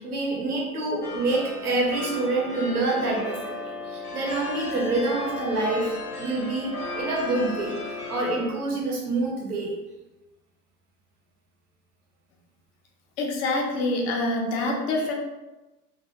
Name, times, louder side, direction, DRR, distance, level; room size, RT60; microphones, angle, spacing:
voice 1, 0.0-5.9 6.2-9.7, right 2 dB, 80° right, -3 dB, 0.8 m, -27 dB
sound 1, 1.0-8.4, left 2 dB, 90° left, 0.6 m, -35 dB
voice 2, 13.2-15.1, left 2 dB, 25° left, 0 dB, 0.4 m, -26 dB
2.3 x 2.1 x 2.7 m, 1.1 s
figure-of-eight pair, 85°, 44 cm